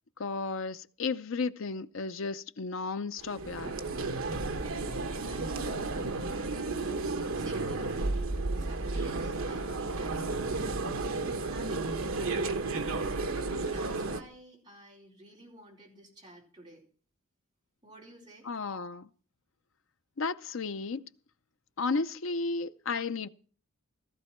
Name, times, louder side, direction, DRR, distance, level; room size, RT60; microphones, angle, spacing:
voice 1, 0.2-3.7 18.4-19.1 20.2-21.0 21.8-23.3, left 4 dB, 60° left, 0.6 m, -33 dB
sound 1, 3.2-14.2, right 3 dB, 70° right, 1.1 m, -32 dB
voice 2, 5.1-6.6 7.3-8.0 8.6-10.3 10.6-12.7 13.6-16.8 17.8-18.5, right 1 dB, 20° right, 4.4 m, -53 dB
15.5 x 14.5 x 4.5 m
head